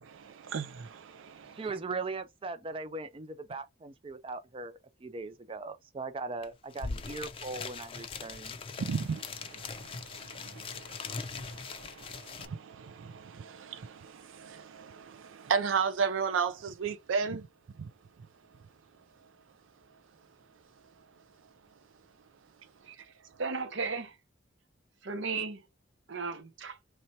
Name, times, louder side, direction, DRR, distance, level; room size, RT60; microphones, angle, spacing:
voice 1, 0.0-1.7 8.8-17.5 17.8-17.9, right 6 dB, 85° right, 0.4 m, -35 dB
voice 2, 1.6-8.5, right 3 dB, 30° right, 0.4 m, -39 dB
sound 1, 6.4-6.5 6.7-12.5, left 4 dB, 30° left, 0.5 m, -41 dB
voice 3, 23.4-24.2 25.0-25.6 26.1-26.8, right 4 dB, 70° right, 0.8 m, -35 dB
4.3 x 3.3 x 2.7 m
head